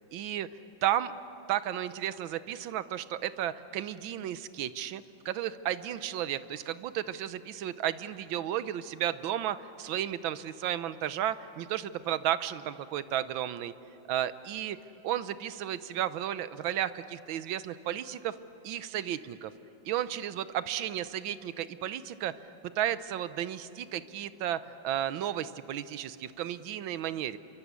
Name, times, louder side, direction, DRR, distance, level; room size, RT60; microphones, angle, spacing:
voice 1, 0.1-0.5 0.8-1.1 1.5-13.7 14.1-14.8 15.0-18.3 18.6-19.5 19.8-22.3 22.8-27.4, right 11 dB, 85° right, 14 dB, 1.6 m, -33 dB
27.0 x 23.5 x 8.2 m, 2.8 s
omnidirectional pair, 2.1 m